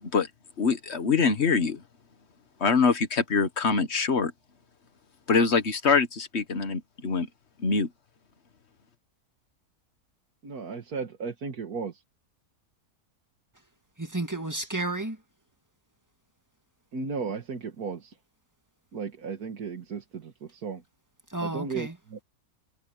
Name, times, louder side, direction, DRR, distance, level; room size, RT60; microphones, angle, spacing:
voice 1, 0.6-1.8 2.6-4.3 5.3-7.3 7.6-7.9, left 5 dB, 45° left, 1.7 m, -24 dB
voice 2, 10.4-12.0 16.9-18.2 18.9-20.8 21.4-22.2, right 5 dB, 80° right, 2.2 m, -35 dB
voice 3, 14.0-15.2 21.3-21.9, right 2 dB, 10° right, 1.9 m, -31 dB
omnidirectional pair, 1.6 m